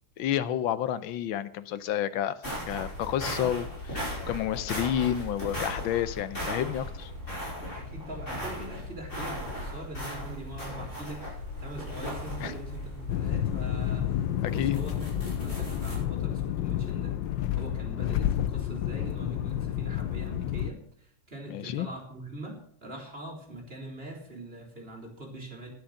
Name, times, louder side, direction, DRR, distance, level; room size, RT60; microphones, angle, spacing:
voice 1, 0.2-2.3 2.7-7.1 12.4-12.5 14.4-14.8 21.5-21.9, left 11 dB, 90° left, 14 dB, 1.5 m, -30 dB
sound 1, 2.4-16.0, left 1 dB, 35° left, 5.9 m, -37 dB
voice 2, 7.7-17.2 17.5-25.7, right 1 dB, 30° right, 1 dB, 3.5 m, -42 dB
sound 2, 13.1-20.7, left 12 dB, 75° left, 1.3 m, -30 dB
11.5 x 10.5 x 6.4 m, 0.62 s
omnidirectional pair, 2.1 m